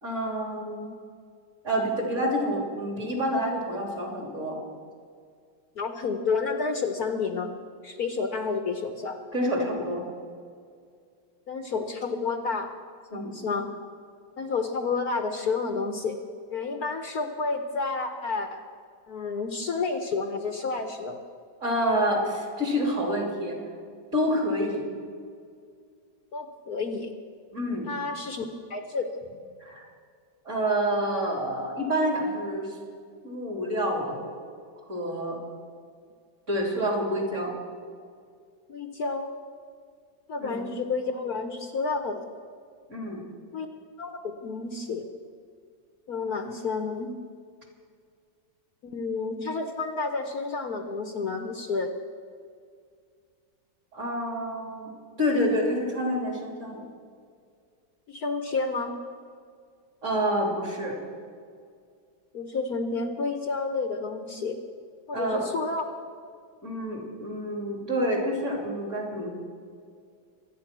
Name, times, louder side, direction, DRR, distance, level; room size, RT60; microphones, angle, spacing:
voice 1, 0.0-1.0 1.6-4.6 9.3-10.0 13.1-13.3 21.6-23.6 24.1-24.9 27.5-27.9 29.6-29.9 30.4-32.8 33.2-34.3 34.9-35.4 36.5-37.5 40.4-40.6 42.9-43.2 53.9-54.9 55.2-56.9 60.0-61.0 65.1-65.4 66.6-69.3, equal, 35° right, 1 dB, 3.7 m, -28 dB
voice 2, 5.8-7.5 7.8-9.2 11.5-12.7 13.1-13.7 14.4-16.2 16.5-18.6 19.1-21.2 26.3-27.1 27.9-28.4 28.7-29.1 38.7-39.3 40.3-42.3 43.5-43.7 44.0-45.0 46.1-47.1 48.8-51.9 58.1-58.9 62.3-64.6 65.1-65.8, left 4 dB, 60° left, 6 dB, 1.3 m, -30 dB
24.5 x 9.4 x 6.1 m, 2.2 s
omnidirectional pair, 2.1 m